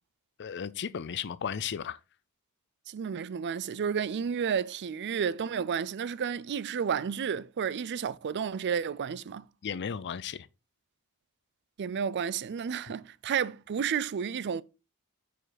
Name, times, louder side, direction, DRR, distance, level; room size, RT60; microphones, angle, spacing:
voice 1, 0.4-2.0 9.6-10.5, left 7 dB, 50° left, 0.5 m, -35 dB
voice 2, 2.9-9.4 11.8-14.6, right 7 dB, 50° right, 0.4 m, -31 dB
8.9 x 5.1 x 4.0 m
head